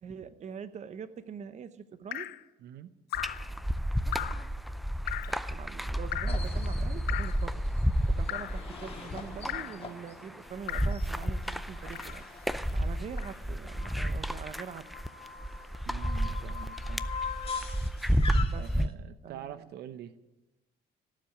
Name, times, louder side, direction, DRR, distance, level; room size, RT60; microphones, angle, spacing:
voice 1, 0.0-2.3 5.2-7.6 8.0-12.2 12.7-14.9 18.4-18.7 19.2-19.8, right 7 dB, 45° right, 12 dB, 1.0 m, -44 dB
Drip, 2.1-2.4 3.1-3.5 4.1-4.5 5.1-5.4 6.1-6.5 7.1-7.4 8.3-8.6 9.5-9.8 10.7-11.0 11.9-12.3 13.2-13.4, left 14 dB, 70° left, 0.6 m, -37 dB
voice 2, 2.6-2.9 15.9-17.0 18.5-20.1, right 10 dB, 75° right, 12 dB, 0.8 m, -45 dB
sound 1, 3.1-18.9, equal, ahead, 0.5 m, -31 dB
sound 2, 6.3-18.9, left 5 dB, 35° left, 1.9 m, -44 dB
17.0 x 7.6 x 9.9 m, 1.0 s
cardioid pair, 110°, 17 cm